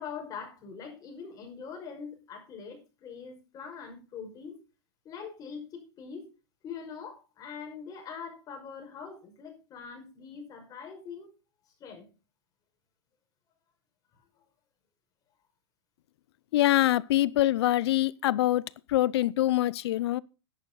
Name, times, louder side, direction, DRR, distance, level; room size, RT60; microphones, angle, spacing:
voice 1, 0.0-4.6 5.0-6.3 6.6-11.3 11.8-12.0, left 6 dB, 25° left, 5.7 m, -43 dB
voice 2, 16.5-20.2, left 15 dB, 65° left, 0.6 m, -25 dB
13.0 x 11.0 x 4.0 m
supercardioid pair, 145°, 14 cm